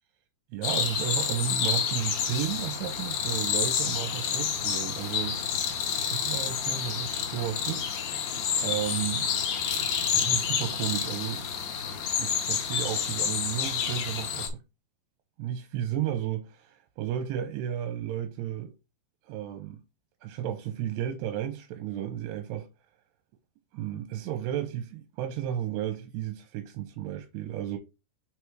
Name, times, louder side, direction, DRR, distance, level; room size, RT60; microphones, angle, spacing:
voice 1, 0.5-5.4 6.1-7.9 8.6-9.3 10.1-11.5 12.2-14.5 15.4-18.7 19.2-19.8 20.2-22.7 23.7-27.8, right 10 dB, 80° right, 2.8 m, -33 dB
sound 1, 0.6-14.5, left 7 dB, 75° left, 1.6 m, -29 dB
6.2 x 3.4 x 4.6 m
omnidirectional pair, 4.9 m